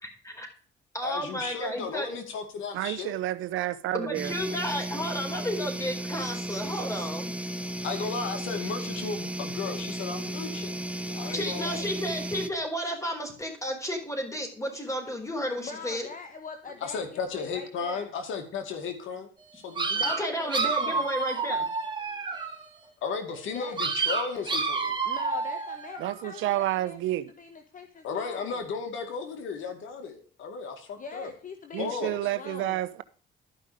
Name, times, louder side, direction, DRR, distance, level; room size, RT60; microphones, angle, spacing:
voice 1, 0.0-0.5 0.9-2.2 3.9-7.3 11.3-16.1 20.0-21.7, equal, 15° left, 4.1 m, -32 dB
voice 2, 1.0-3.1 7.8-10.8 11.1-11.9 16.8-20.1 23.0-25.0 28.0-31.3 31.8-32.2, left 5 dB, 80° left, 2.3 m, -35 dB
voice 3, 2.7-4.3 26.0-27.3 31.7-33.0, right 14 dB, 90° right, 0.8 m, -30 dB
sound 1, 4.1-12.5, right 1 dB, 5° right, 0.8 m, -34 dB
voice 4, 15.6-17.0 17.3-18.1 19.9-21.0 23.5-23.8 25.0-28.6 31.0-32.8, left 5 dB, 40° left, 1.2 m, -42 dB
sound 2, 19.8-22.6 23.8-26.2, right 4 dB, 25° right, 3.2 m, -29 dB
12.5 x 5.7 x 5.0 m
cardioid pair, 90°, 20 cm